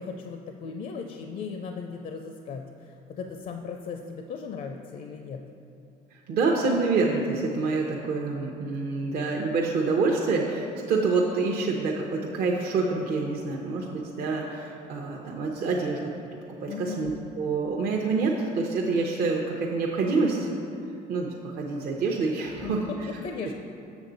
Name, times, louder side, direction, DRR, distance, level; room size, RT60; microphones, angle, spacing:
voice 1, 0.0-5.5 16.7-17.1 22.6-23.0 23.2-23.5, left 5 dB, 50° left, 4 dB, 0.5 m, -37 dB
voice 2, 6.1-16.1 16.6-20.5 21.1-23.1, right 3 dB, 65° right, -1 dB, 0.7 m, -27 dB
7.1 x 6.7 x 3.9 m, 2.6 s
cardioid pair, 110°, 17 cm